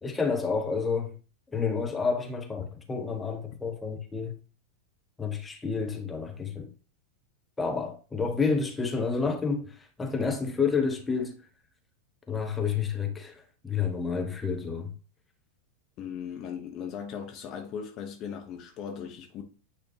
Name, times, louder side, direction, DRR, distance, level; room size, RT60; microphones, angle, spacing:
voice 1, 0.0-1.1 1.5-4.3 5.2-6.7 7.6-11.5 12.3-14.9, left 5 dB, 10° left, 1.3 m, -29 dB
voice 2, 16.0-19.4, left 7 dB, 35° left, 1.2 m, -38 dB
9.3 x 4.2 x 2.9 m
figure-of-eight pair, 90°, 0 cm